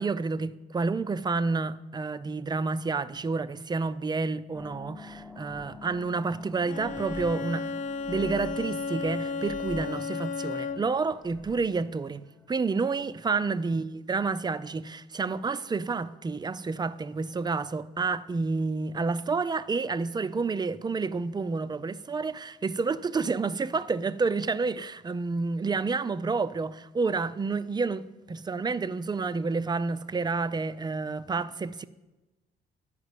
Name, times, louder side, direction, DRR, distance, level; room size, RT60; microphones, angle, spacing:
voice 1, 0.0-7.8 8.1-31.8, right 4 dB, 20° right, 0.4 m, -29 dB
sound 1, 4.5-13.3, left 2 dB, 5° left, 0.7 m, -48 dB
Bowed string instrument, 6.6-11.1, left 4 dB, 40° left, 0.5 m, -34 dB
10.5 x 5.1 x 8.1 m
cardioid pair, 90°, 20 cm